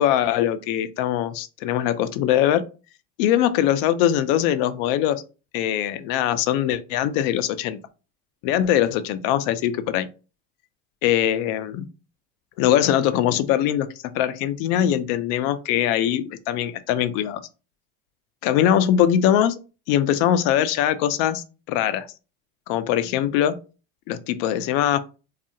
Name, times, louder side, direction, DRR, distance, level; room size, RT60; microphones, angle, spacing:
voice 1, 0.0-2.6 3.2-5.2 5.5-7.8 8.4-10.1 11.0-11.9 12.6-17.4 18.4-19.6 19.9-22.1 22.7-23.6 24.1-25.0, left 11 dB, 60° left, 0.4 m, -22 dB
2.6 x 2.4 x 2.7 m
supercardioid pair, 130°, 31 cm